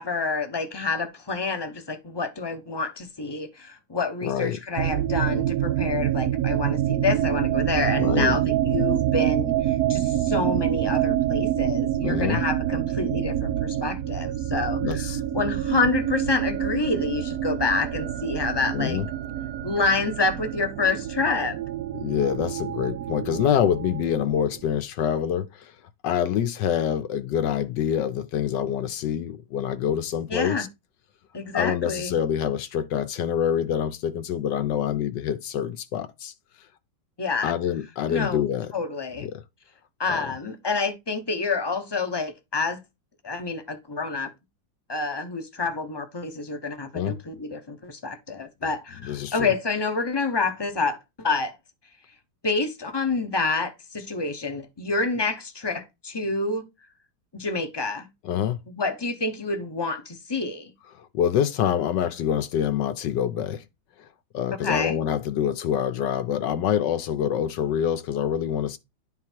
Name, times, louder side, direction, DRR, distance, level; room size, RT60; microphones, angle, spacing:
voice 1, 0.0-15.1 15.3-19.0 19.6-21.6 30.3-30.6 31.3-32.2 37.2-37.5 38.1-38.4 38.7-39.3 40.0-42.8 43.2-44.3 44.9-51.5 52.4-56.6 57.3-58.1 58.8-60.7 64.6-65.0, left 4 dB, 35° left, 0.4 m, -28 dB
voice 2, 4.2-4.6 7.9-8.4 12.0-12.4 14.8-15.2 18.7-19.1 21.9-25.8 26.0-30.7 31.5-36.3 37.4-38.7 39.2-39.4 40.1-40.3 46.9-47.2 49.0-49.5 58.2-58.6 60.9-63.7 64.0-64.1 64.3-68.8, left 9 dB, 70° left, 1.2 m, -26 dB
sound 1, 4.8-24.6, right 12 dB, 85° right, 0.8 m, -26 dB
11.0 x 3.8 x 4.5 m
omnidirectional pair, 2.2 m